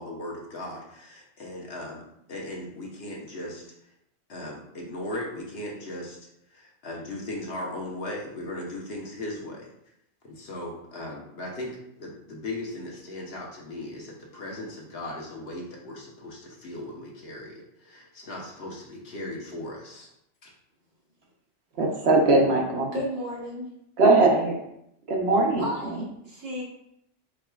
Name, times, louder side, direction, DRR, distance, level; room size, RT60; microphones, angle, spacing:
voice 1, 0.0-2.0 2.3-3.7 4.3-6.2 6.5-9.7 10.2-20.1 20.4-20.5, left 1 dB, 55° left, -2 dB, 1.2 m, -37 dB
voice 2, 21.8-22.9 24.0-24.6 25.1-25.7, right 2 dB, 60° right, 1 dB, 1.0 m, -20 dB
voice 3, 22.9-23.7 25.6-26.6, equal, 90° right, -4 dB, 1.8 m, -33 dB
4.9 x 4.6 x 2.3 m, 0.77 s
omnidirectional pair, 1.3 m